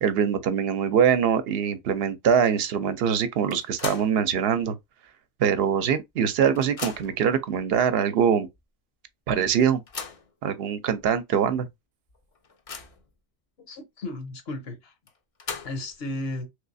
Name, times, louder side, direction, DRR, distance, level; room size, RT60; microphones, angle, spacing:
voice 1, 0.0-4.7 5.4-8.5 9.3-9.8 10.4-11.7, right 7 dB, 70° right, 0.8 m, -23 dB
sound 1, 3.5-4.2 4.6-4.7 5.8-5.9 6.2-7.3 8.0-8.1 8.5-8.6 9.6-10.3 11.0-11.1 11.5-11.6 12.1-13.1 15.1-16.0, left 5 dB, 45° left, 0.5 m, -38 dB
voice 2, 13.6-14.9 15.6-16.5, left 2 dB, 65° left, 1.1 m, -34 dB
3.2 x 3.1 x 2.6 m
omnidirectional pair, 1.1 m